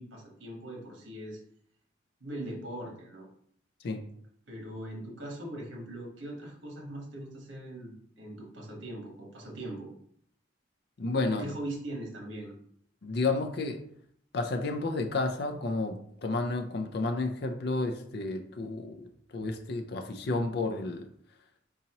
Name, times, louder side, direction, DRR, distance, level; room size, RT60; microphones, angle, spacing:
voice 1, 0.0-1.4 2.2-3.3 4.5-9.9 11.3-12.5, right 1 dB, 90° right, 0 dB, 1.2 m, -40 dB
voice 2, 11.0-11.5 13.0-13.8 14.3-21.1, left 3 dB, 55° left, 6 dB, 0.5 m, -31 dB
4.0 x 2.8 x 2.9 m, 0.66 s
head